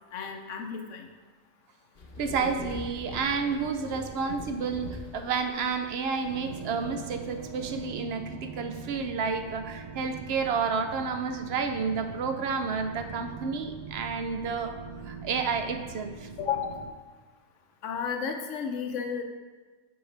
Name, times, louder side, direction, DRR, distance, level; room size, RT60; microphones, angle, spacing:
voice 1, 0.1-1.1 16.4-16.8 17.8-19.2, left 7 dB, 65° left, 4 dB, 1.1 m, -32 dB
sound 1, 2.0-7.8, left 2 dB, 45° left, 1.0 m, -43 dB
voice 2, 2.2-14.8 15.0-16.3, right 5 dB, 60° right, 7 dB, 0.7 m, -30 dB
sound 2, 6.3-16.9, right 5 dB, 80° right, 1.0 m, -42 dB
7.8 x 6.2 x 3.3 m, 1.4 s
omnidirectional pair, 1.4 m